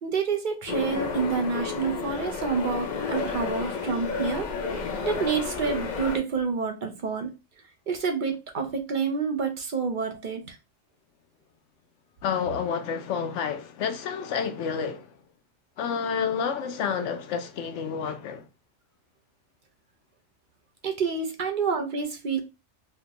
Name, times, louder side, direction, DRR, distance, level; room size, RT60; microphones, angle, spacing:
voice 1, 0.0-7.3 7.9-10.6 20.8-22.4, right 5 dB, 55° right, 0.6 m, -28 dB
sound 1, 0.7-6.2, left 5 dB, 50° left, 0.5 m, -31 dB
voice 2, 12.2-15.2 15.8-18.5, left 6 dB, 70° left, 0.9 m, -29 dB
4.2 x 2.1 x 2.8 m
omnidirectional pair, 1.3 m